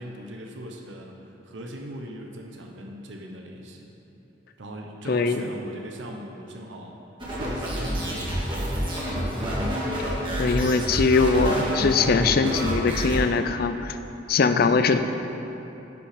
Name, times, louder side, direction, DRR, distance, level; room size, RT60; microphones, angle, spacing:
voice 1, 0.0-3.9 4.6-7.0 7.3-8.9 14.5-14.7, equal, 85° right, 1 dB, 0.9 m, -39 dB
voice 2, 5.1-5.5 10.4-14.0 14.3-15.0, left 4 dB, 55° left, 9 dB, 0.4 m, -21 dB
sound 1, 7.2-13.2, equal, 25° right, 2.0 m, -28 dB
10.5 x 5.8 x 5.0 m, 3.0 s
head